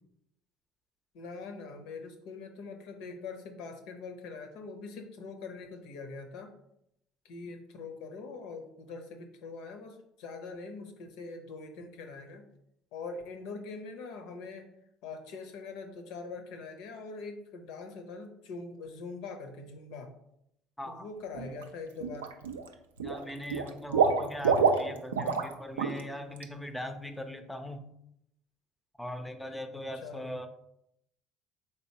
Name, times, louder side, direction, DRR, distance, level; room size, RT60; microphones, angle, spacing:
voice 1, 1.1-6.5 7.2-12.4 12.9-14.7 15.0-20.1 20.9-22.3 29.7-30.3, left 4 dB, 70° left, 5 dB, 0.6 m, -43 dB
voice 2, 20.8-21.1 23.0-27.8 29.0-30.5, left 1 dB, 5° left, 7 dB, 0.5 m, -40 dB
Water / Liquid, 21.4-21.6 22.0-22.7 23.0-25.5 25.8-26.0 26.4-26.5, right 5 dB, 85° right, 0.3 m, -27 dB
3.9 x 3.3 x 2.8 m, 0.77 s
hypercardioid pair, 65°, 0 cm